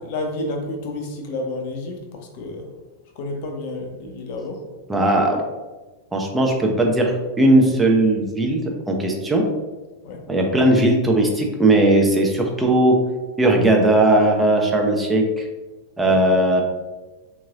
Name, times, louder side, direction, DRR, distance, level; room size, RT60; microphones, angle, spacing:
voice 1, 0.1-2.0 2.3-2.6 3.2-4.6 10.0-10.2 16.0-16.2, left 2 dB, 50° left, 2 dB, 0.6 m, -30 dB
voice 2, 4.9-5.4 6.1-9.4 10.3-13.0 13.4-15.5 16.0-16.6, right 1 dB, 10° right, 1 dB, 0.5 m, -18 dB
3.6 x 3.0 x 2.5 m, 1.2 s
figure-of-eight pair, 90°, 0 cm